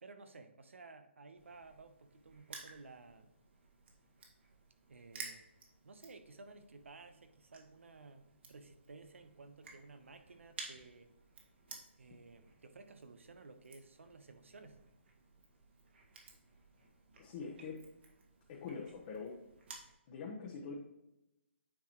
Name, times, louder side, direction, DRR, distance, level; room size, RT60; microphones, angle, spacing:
voice 1, 0.0-3.3 4.9-5.5 5.8-11.1 12.0-14.8, right 3 dB, 85° right, 8 dB, 0.9 m, -55 dB
Crushing, 1.4-19.9, right 4 dB, 60° right, 1.9 m, -55 dB
voice 2, 17.2-17.8 18.5-19.4 20.1-20.7, left 5 dB, 35° left, -3 dB, 1.1 m, -44 dB
8.9 x 4.9 x 3.1 m, 0.90 s
hypercardioid pair, 155°, 7 cm